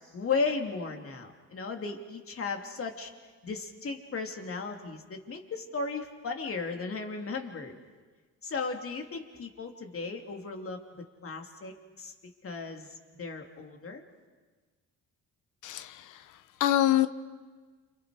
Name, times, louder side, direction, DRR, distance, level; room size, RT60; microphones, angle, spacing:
voice 1, 0.0-3.1 3.4-7.7 8.4-10.8 11.2-12.1 12.4-14.0, left 4 dB, 45° left, 3 dB, 2.9 m, -35 dB
voice 2, 15.6-16.2 16.6-17.1, left 13 dB, 85° left, 13 dB, 0.9 m, -25 dB
29.0 x 28.0 x 5.0 m, 1.4 s
cardioid pair, 90°, 30 cm